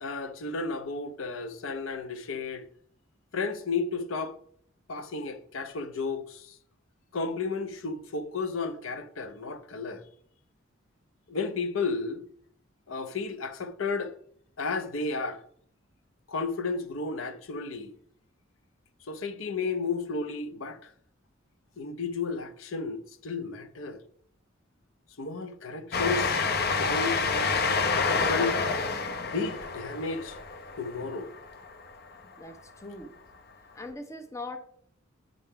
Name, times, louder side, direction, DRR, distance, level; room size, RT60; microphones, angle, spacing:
voice 1, 0.0-2.7 3.3-4.4 4.9-6.6 7.1-10.0 11.3-12.2 12.9-14.1 14.6-15.4 16.3-17.9 19.1-20.9 21.8-24.0 25.2-26.4 26.8-27.6 28.1-28.6 29.2-30.4 30.8-31.3, left 4 dB, 90° left, 0.8 m, -33 dB
Train, 25.9-32.1, left 4 dB, 55° left, 0.8 m, -28 dB
voice 2, 32.4-33.1 33.7-34.6, left 2 dB, 15° left, 0.8 m, -40 dB
9.4 x 3.6 x 5.7 m
head